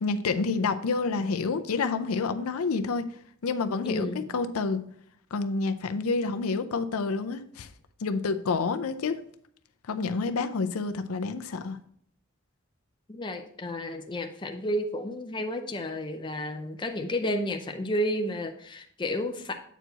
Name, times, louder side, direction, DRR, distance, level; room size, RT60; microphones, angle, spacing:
voice 1, 0.0-3.0 3.4-4.8 5.3-7.7 8.0-9.2 9.9-11.8, left 4 dB, 80° left, 9 dB, 0.5 m, -28 dB
voice 2, 3.8-4.3 13.1-19.5, left 1 dB, 20° left, 5 dB, 0.5 m, -31 dB
8.0 x 4.6 x 4.0 m, 0.65 s
head